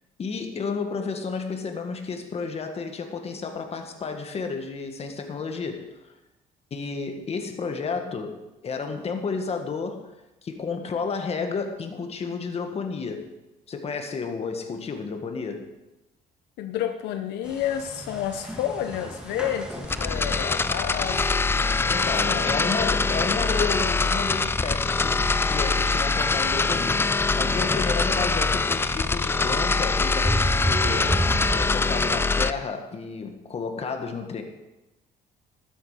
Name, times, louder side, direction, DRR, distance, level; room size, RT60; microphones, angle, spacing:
voice 1, 0.2-6.1 6.7-10.1 10.4-13.3 13.7-15.7 21.9-34.4, left 4 dB, 35° left, 5 dB, 1.8 m, -31 dB
voice 2, 16.6-22.0 22.2-23.0 28.1-28.3, left 10 dB, 85° left, 7 dB, 0.9 m, -31 dB
sound 1, 17.4-31.6, equal, 5° right, 2.4 m, -34 dB
sound 2, 19.8-32.5, left 4 dB, 15° left, 0.3 m, -24 dB
12.5 x 9.8 x 5.0 m, 1.0 s
cardioid pair, 110°, 17 cm